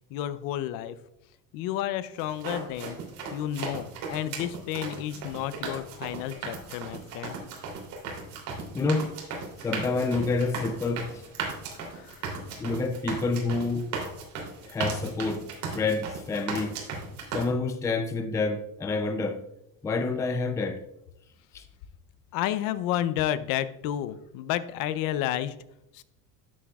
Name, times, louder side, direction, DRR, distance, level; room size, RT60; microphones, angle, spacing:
voice 1, 0.1-1.0 1.5-3.0 3.3-7.4 11.9-12.3 22.3-25.6 25.9-26.0, left 12 dB, 65° left, 0.6 m, -31 dB
sound 1, 2.2-17.4, right 4 dB, 70° right, 3.1 m, -36 dB
voice 2, 8.7-9.1 9.6-11.3 12.6-13.9 14.6-15.4 15.7-16.8 17.3-19.4 19.8-20.8 21.5-21.6, left 3 dB, 10° left, 0.4 m, -28 dB
12.5 x 7.5 x 2.4 m
cardioid pair, 150°, 36 cm